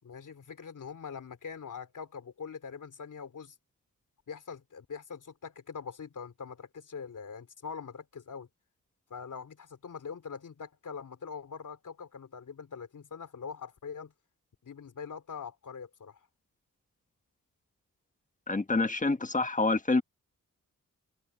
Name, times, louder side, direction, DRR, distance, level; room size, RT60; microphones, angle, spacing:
voice 1, 0.0-3.5 4.3-8.5 9.1-14.1 14.6-16.2, left 6 dB, 65° left, 3.3 m, -43 dB
voice 2, 18.5-20.0, left 3 dB, 25° left, 1.3 m, -27 dB
wide cardioid pair, 85°, 33 cm